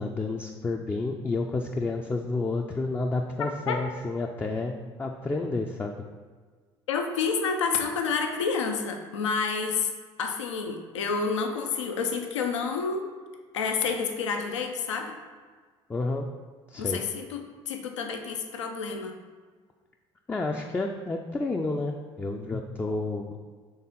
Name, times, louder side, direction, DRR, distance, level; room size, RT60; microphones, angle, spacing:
voice 1, 0.0-6.0 15.9-16.3 16.7-17.0 20.3-23.3, left 3 dB, 15° left, 2 dB, 0.4 m, -30 dB
voice 2, 3.4-3.8 6.9-9.9 10.2-13.1 13.5-15.1 16.8-19.2, left 5 dB, 80° left, 4 dB, 0.5 m, -29 dB
4.1 x 3.5 x 3.7 m, 1.5 s
figure-of-eight pair, 55°, 15 cm